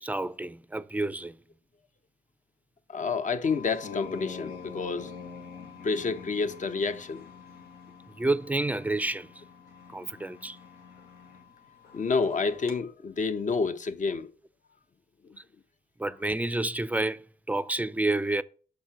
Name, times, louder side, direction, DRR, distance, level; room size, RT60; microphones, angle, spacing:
voice 1, 0.0-1.4 8.2-9.3 9.9-10.6 16.0-18.4, right 2 dB, 10° right, 0.4 m, -29 dB
voice 2, 2.9-5.1 5.8-7.2 11.9-14.3, left 4 dB, 50° left, 0.8 m, -29 dB
sound 1, 3.4-12.8, left 5 dB, 90° left, 1.3 m, -46 dB
6.6 x 4.4 x 4.6 m
supercardioid pair, 55°, 16 cm